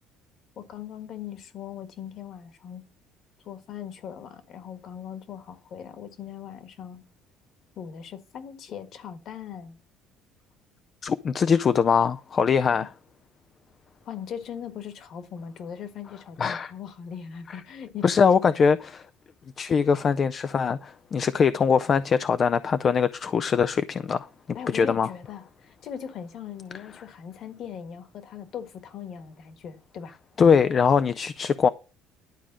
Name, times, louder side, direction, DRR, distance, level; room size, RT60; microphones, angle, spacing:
voice 1, 0.6-2.8 3.4-7.0 7.7-9.8 12.7-12.9 14.0-18.1 18.4-18.6 24.5-30.1, left 8 dB, 45° left, 1.6 m, -39 dB
voice 2, 11.0-12.9 16.4-16.7 18.0-19.0 19.6-24.3 24.7-25.1 30.4-31.7, left 6 dB, 30° left, 0.4 m, -22 dB
11.5 x 4.9 x 7.3 m
cardioid pair, 155°, 0 cm